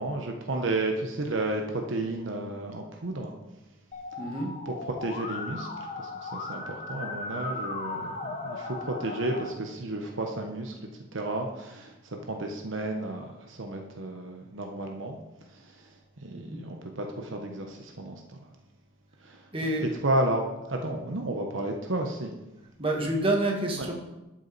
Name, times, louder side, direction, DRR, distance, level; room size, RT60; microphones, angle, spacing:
voice 1, 0.0-3.3 4.7-5.7 6.0-10.7 11.1-15.2 15.5-15.9 16.2-18.4 19.2-19.5 19.8-20.4 20.7-22.3, right 2 dB, 70° right, 2 dB, 1.0 m, -32 dB
Musical instrument, 3.9-9.5, left 3 dB, 40° left, 0.9 m, -37 dB
voice 2, 4.2-4.5 16.3-16.6 19.5-19.9 22.8-23.9, right 1 dB, 30° right, 0 dB, 1.6 m, -28 dB
12.0 x 6.3 x 4.1 m, 1.0 s
head